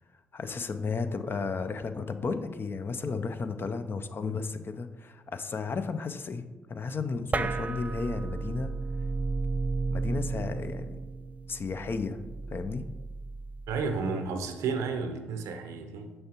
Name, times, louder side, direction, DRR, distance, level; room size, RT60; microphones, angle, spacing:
voice 1, 0.3-6.4 6.7-8.7 9.9-11.0 11.5-12.9, left 4 dB, 45° left, 9 dB, 0.5 m, -33 dB
sound 1, 7.3-14.1, right 3 dB, 30° right, 0.3 m, -33 dB
voice 2, 13.7-16.1, right 4 dB, 75° right, 7 dB, 0.6 m, -32 dB
6.4 x 5.8 x 2.9 m, 1.2 s
hypercardioid pair, 50°, 5 cm